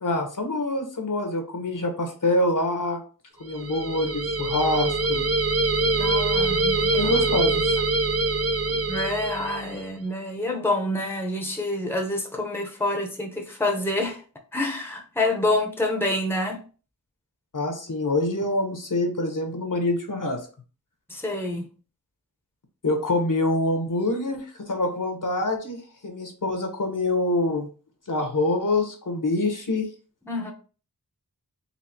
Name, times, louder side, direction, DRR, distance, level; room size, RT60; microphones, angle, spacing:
voice 1, 0.0-3.0 3.4-5.2 7.0-7.8 17.5-20.4 22.8-27.7 28.1-29.9, left 2 dB, 55° left, 4 dB, 1.0 m, -25 dB
sound 1, 3.5-9.9, right 2 dB, 40° right, 0.6 m, -24 dB
voice 2, 5.8-7.1 8.9-14.2 14.5-16.6 21.1-21.6 30.3-30.5, left 2 dB, 5° left, 2 dB, 0.9 m, -27 dB
4.1 x 2.7 x 2.8 m, 0.37 s
wide cardioid pair, 40°, 37 cm